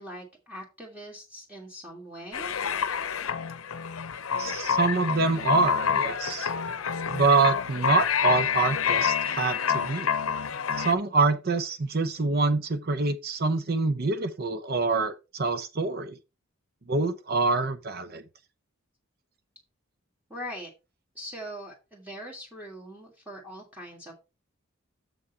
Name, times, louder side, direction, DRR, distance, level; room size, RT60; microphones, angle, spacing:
voice 1, 0.0-2.6 20.3-20.7 21.2-24.1, equal, 10° right, 1.8 m, -41 dB
sound 1, 2.3-10.9, left 7 dB, 80° left, 0.7 m, -28 dB
voice 2, 4.4-6.5 7.1-10.1 10.8-16.2 16.9-18.2, right 3 dB, 50° right, 0.7 m, -26 dB
7.0 x 6.2 x 4.3 m
head